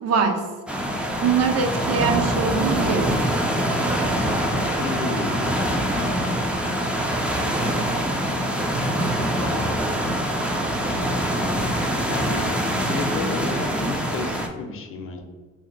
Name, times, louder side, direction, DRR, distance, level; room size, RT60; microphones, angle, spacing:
voice 1, 0.0-0.4 1.2-3.1, right 5 dB, 55° right, 4 dB, 0.6 m, -22 dB
sound 1, 0.7-14.5, right 1 dB, 5° right, 0.4 m, -24 dB
voice 2, 4.8-5.6 9.3-9.9 11.1-11.6 12.1-15.2, left 3 dB, 45° left, 4 dB, 0.6 m, -32 dB
2.7 x 2.1 x 3.8 m, 1.4 s
cardioid pair, 90°, 30 cm